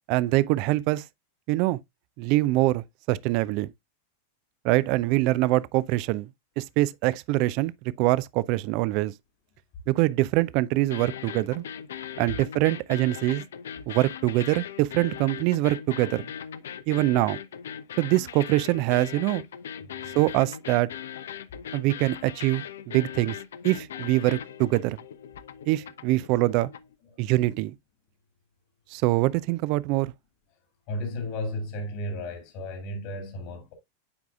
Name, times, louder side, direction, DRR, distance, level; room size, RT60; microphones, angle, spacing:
voice 1, 0.1-1.0 1.5-1.8 2.2-3.7 4.6-6.3 6.6-7.7 8.0-9.1 9.9-11.7 12.2-13.4 13.9-16.2 16.9-17.4 18.0-19.4 20.1-20.9 21.7-23.4 23.6-25.0 25.7-26.7 27.2-27.7 28.9-30.1, right 18 dB, 45° right, 0.3 m, -24 dB
sound 1, 10.8-27.0, left 9 dB, 60° left, 0.4 m, -39 dB
voice 2, 30.9-33.7, left 1 dB, 45° left, 2.2 m, -33 dB
8.6 x 4.7 x 2.3 m
figure-of-eight pair, 90°, 0 cm